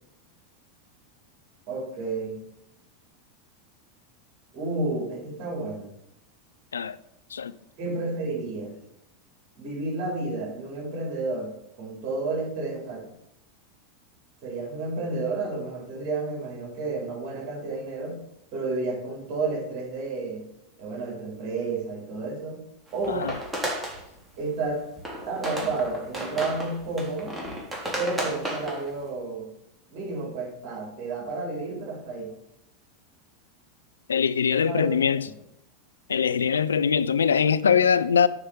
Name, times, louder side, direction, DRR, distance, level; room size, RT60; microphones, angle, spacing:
voice 1, 1.7-2.4 4.5-5.9 7.8-8.7 9.6-13.1 14.4-18.2 18.5-20.4 20.8-22.6 22.9-23.3 24.4-24.9 25.3-27.3 28.0-29.5 29.9-32.3 34.6-35.0, right 3 dB, 45° right, 4.2 m, -31 dB
sound 1, 22.9-24.0 24.7-24.8 25.0-29.0, right 1 dB, 10° right, 3.3 m, -33 dB
voice 2, 23.1-23.4 34.1-35.3 36.1-38.3, left 7 dB, 80° left, 0.5 m, -22 dB
9.7 x 5.0 x 7.3 m
hypercardioid pair, 90°, 0 cm